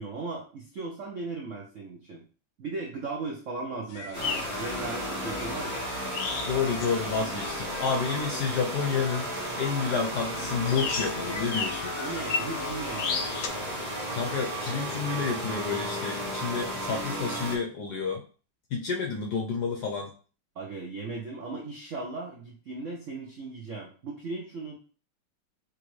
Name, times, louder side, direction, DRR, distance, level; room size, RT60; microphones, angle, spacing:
voice 1, 0.0-2.2 2.6-5.9 12.0-13.4 20.5-24.8, right 3 dB, 65° right, -1 dB, 0.7 m, -37 dB
sound 1, 3.9-13.5, left 6 dB, 85° left, 1.5 m, -36 dB
sound 2, 4.1-17.6, equal, 20° right, 1.3 m, -34 dB
voice 2, 6.4-12.0 14.1-18.2 18.7-20.1, left 5 dB, 70° left, 2 dB, 1.0 m, -30 dB
5.2 x 3.2 x 3.1 m, 0.37 s
omnidirectional pair, 2.4 m